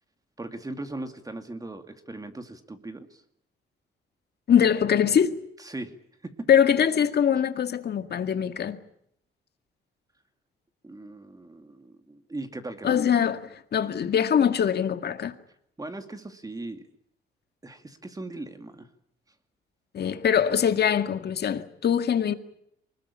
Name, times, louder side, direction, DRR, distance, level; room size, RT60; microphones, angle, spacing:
voice 1, 0.4-3.2 5.6-5.9 6.2-6.5 10.8-13.0 15.8-16.9 17.6-18.9, right 2 dB, 20° right, 2.5 m, -39 dB
voice 2, 4.5-5.4 6.5-8.8 12.8-13.4 13.7-15.3 19.9-22.3, left 8 dB, 55° left, 2.0 m, -22 dB
24.5 x 21.0 x 8.6 m
cardioid pair, 90°, 20 cm